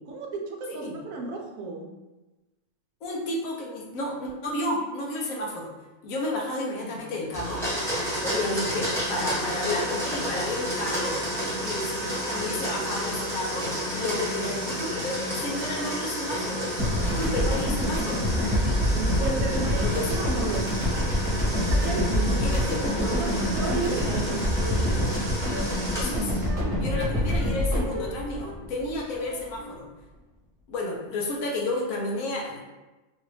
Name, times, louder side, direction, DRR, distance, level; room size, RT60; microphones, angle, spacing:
voice 1, 0.1-1.9 6.8-7.0 16.9-17.4 17.9-18.1 18.9-20.8 21.5-22.6 23.0-24.3, right 4 dB, 70° right, 1 dB, 0.9 m, -33 dB
voice 2, 3.0-5.7 6.0-7.6 8.2-16.7 17.0-18.2 19.5-20.2 22.4-23.1 24.0-24.2 25.9-26.3 26.8-29.9 30.7-32.6, left 2 dB, 70° left, -1 dB, 1.0 m, -32 dB
Domestic sounds home sounds, 7.3-26.5, equal, ahead, 0.9 m, -31 dB
sound 1, 16.8-29.2, equal, 35° right, 1.1 m, -26 dB
Wind instrument woodwind instrument, 23.8-25.2 25.5-25.7 25.9-26.1 26.4-26.6 26.9-27.6 27.9-29.8, left 4 dB, 15° right, 0.5 m, -40 dB
3.2 x 2.4 x 3.1 m, 1.1 s
omnidirectional pair, 1.5 m